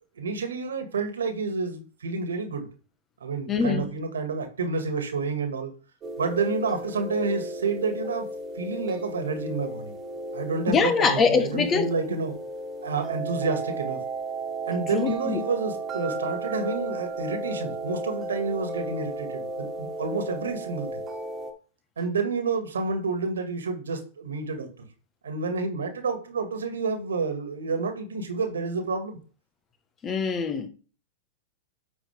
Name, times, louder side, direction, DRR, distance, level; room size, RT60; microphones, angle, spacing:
voice 1, 0.2-2.7 3.2-5.7 6.2-8.3 8.6-9.9 10.3-12.3 12.8-14.0 14.6-21.0 22.0-24.7 25.2-29.2, right 4 dB, 85° right, 2.0 m, -29 dB
voice 2, 3.5-4.0 10.7-11.9 14.9-15.4 30.0-30.7, left 5 dB, 25° left, 1.3 m, -23 dB
sound 1, 6.0-21.5, right 2 dB, 30° right, 1.8 m, -34 dB
9.7 x 4.8 x 3.5 m
hypercardioid pair, 105°, 0 cm